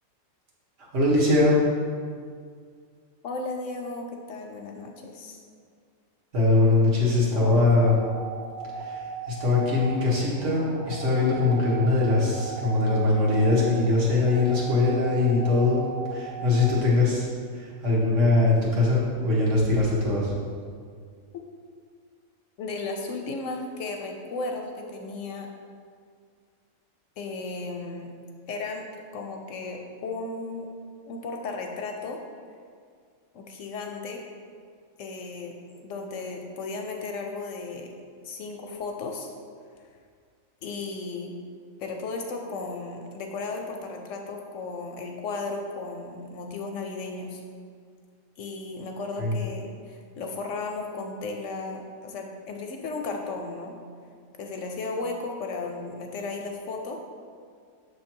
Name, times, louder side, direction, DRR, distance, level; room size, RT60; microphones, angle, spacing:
voice 1, 0.9-1.6 6.3-8.0 8.8-15.8 16.1-17.3 17.5-20.3 49.2-49.3, left 2 dB, 60° right, -5 dB, 1.6 m, -22 dB
voice 2, 3.2-5.4 7.2-7.6 22.6-25.5 27.2-28.1 28.5-28.8 29.1-30.7 31.1-32.2 33.3-34.2 35.0-38.0 38.2-39.3 40.6-41.3 41.8-47.4 48.4-53.8 54.4-57.0, left 3 dB, 70° left, 2 dB, 0.9 m, -35 dB
sound 1, 7.9-16.7, right 4 dB, 80° right, 1.2 m, -38 dB
6.7 x 3.2 x 4.4 m, 2.1 s
omnidirectional pair, 1.5 m